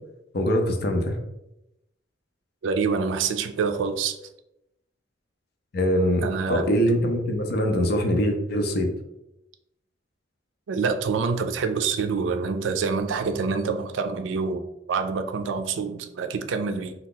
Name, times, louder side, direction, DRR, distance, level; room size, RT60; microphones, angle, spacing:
voice 1, 0.3-1.2 5.7-8.9, equal, 55° left, 4 dB, 0.5 m, -23 dB
voice 2, 2.6-4.2 6.2-6.7 10.7-16.9, right 5 dB, 80° right, 8 dB, 0.4 m, -26 dB
2.8 x 2.3 x 3.7 m, 0.87 s
head